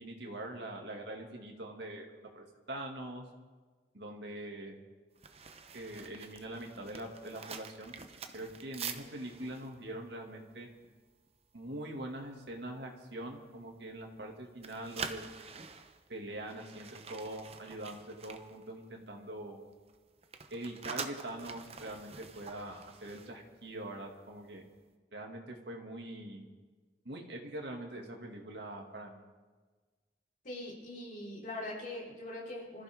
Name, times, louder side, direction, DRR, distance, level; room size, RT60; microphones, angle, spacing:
voice 1, 0.0-2.1 2.3-3.2 3.9-4.8 5.7-7.9 8.3-10.7 11.5-15.3 16.1-19.6 20.5-24.6 25.1-26.4 27.0-29.2, right 1 dB, 65° right, 1 dB, 2.3 m, -43 dB
sound 1, 5.2-11.3 11.6-11.8 12.2-12.5 13.0-14.3 14.5-19.3 19.6-24.1 24.3-24.6, right 5 dB, 35° right, 0.8 m, -46 dB
voice 2, 30.4-32.8, left 1 dB, 45° left, -4 dB, 4.4 m, -42 dB
25.5 x 14.5 x 3.7 m, 1.4 s
head